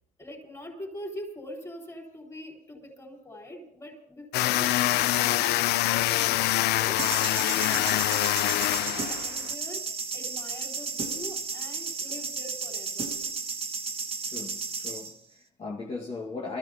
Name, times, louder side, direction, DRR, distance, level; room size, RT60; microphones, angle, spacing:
voice 1, 0.2-7.0 7.3-13.2, equal, 20° left, 4.2 m, -43 dB
sound 1, 4.3-9.5, left 15 dB, 75° left, 0.4 m, -25 dB
sound 2, 7.0-15.1, right 5 dB, 35° right, 1.6 m, -33 dB
voice 2, 14.2-16.6, left 3 dB, 35° left, 1.7 m, -38 dB
24.5 x 13.5 x 2.8 m
cardioid pair, 110°, 17 cm